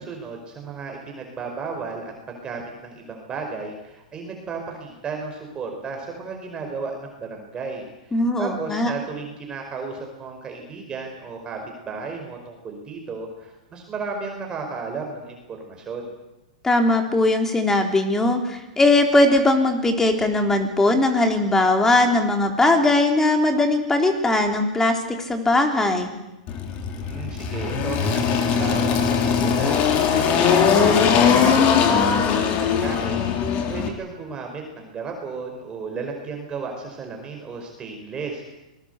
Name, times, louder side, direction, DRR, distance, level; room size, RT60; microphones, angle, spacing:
voice 1, 0.0-16.1 26.9-29.0 29.4-38.4, right 4 dB, 20° right, 2 dB, 5.0 m, -34 dB
voice 2, 8.1-8.9 16.6-26.1, left 2 dB, 10° left, 5 dB, 3.6 m, -19 dB
Engine, 26.5-33.9, left 7 dB, 35° left, 3.8 m, -20 dB
26.0 x 20.5 x 8.2 m, 0.98 s
hypercardioid pair, 135°, 4 cm